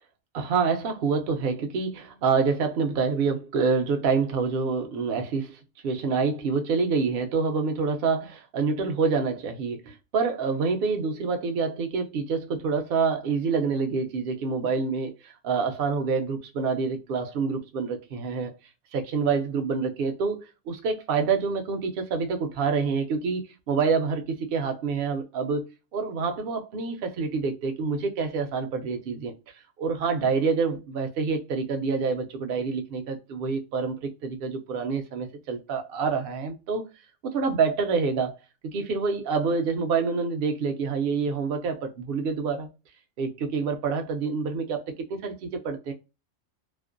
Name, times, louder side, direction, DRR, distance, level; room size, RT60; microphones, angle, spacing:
voice 1, 0.3-18.5 18.9-25.7 25.9-29.3 29.8-36.9 37.2-38.4 38.6-42.7 43.2-45.9, right 5 dB, 60° right, 0.7 m, -27 dB
2.5 x 2.1 x 2.4 m
omnidirectional pair, 1.3 m